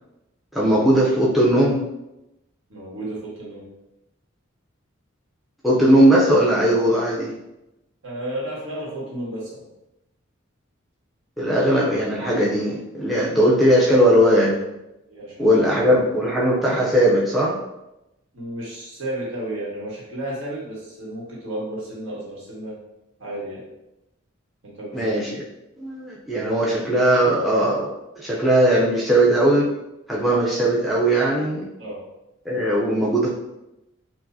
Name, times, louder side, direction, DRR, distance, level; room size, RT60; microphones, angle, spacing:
voice 1, 0.5-1.8 5.6-7.4 11.4-14.6 15.4-17.6 24.9-25.4 25.8-27.9 28.2-29.7 30.1-31.7 32.4-33.3, right 1 dB, ahead, -6 dB, 0.4 m, -19 dB
voice 2, 2.7-3.6 8.0-9.6 15.1-15.8 18.3-22.7 23.2-23.6 24.6-25.2 31.8-32.0, right 1 dB, 70° right, -5 dB, 1.3 m, -32 dB
4.5 x 2.0 x 2.6 m, 0.92 s
head